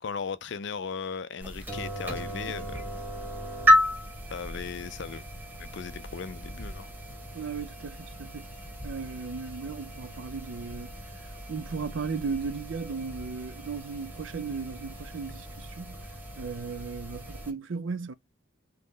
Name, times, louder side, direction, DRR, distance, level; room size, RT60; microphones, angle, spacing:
voice 1, 0.0-3.0 4.3-5.2 5.6-6.9, left 6 dB, 55° left, 0.4 m, -37 dB
sound 1, 1.4-17.5, left 1 dB, 10° right, 1.1 m, -33 dB
voice 2, 7.3-8.5 8.8-10.9 11.5-16.1 16.4-18.1, right 5 dB, 65° right, 0.5 m, -36 dB
3.7 x 3.1 x 3.9 m
head